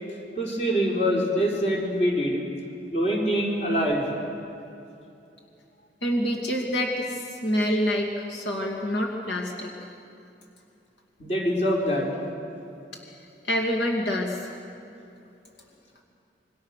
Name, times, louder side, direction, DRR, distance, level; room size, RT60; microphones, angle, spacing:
voice 1, 0.4-2.4 2.9-4.2 11.2-12.1, equal, 40° left, -1 dB, 4.2 m, -24 dB
voice 2, 6.0-9.7 13.5-14.5, equal, 80° left, 0 dB, 2.5 m, -27 dB
27.0 x 23.0 x 6.6 m, 2.7 s
head